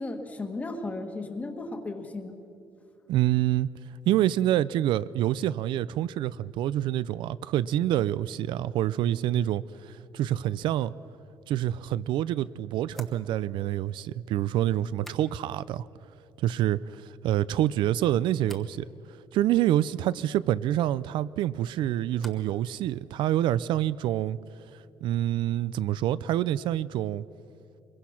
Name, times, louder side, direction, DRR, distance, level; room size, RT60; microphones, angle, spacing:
voice 1, 0.0-2.3, left 2 dB, 20° left, 5 dB, 1.5 m, -35 dB
voice 2, 3.1-3.7 4.1-10.9 11.5-15.9 16.4-18.9 19.3-24.4 25.0-27.2, right 12 dB, 80° right, 17 dB, 0.4 m, -27 dB
sound 1, 12.9-15.7 16.0-16.6 17.0-17.6 18.4-18.8 21.2-22.6 22.9-23.5, equal, 5° left, 1.1 m, -53 dB
24.5 x 22.0 x 5.8 m, 2.7 s
cardioid pair, 180°, 8 cm